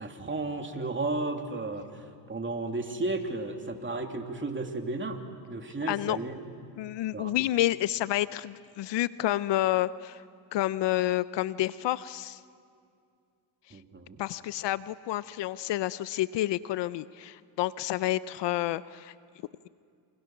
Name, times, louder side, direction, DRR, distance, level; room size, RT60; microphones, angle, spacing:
voice 1, 0.0-5.2 5.5-6.4 7.1-7.3 13.7-14.2, right 2 dB, 25° right, 3 dB, 3.0 m, -33 dB
voice 2, 5.9-6.2 6.8-10.2 10.5-12.4 13.7-13.8 14.2-19.1, left 14 dB, 60° left, 17 dB, 0.7 m, -29 dB
28.5 x 26.0 x 6.1 m, 2.3 s
supercardioid pair, 80°, 48 cm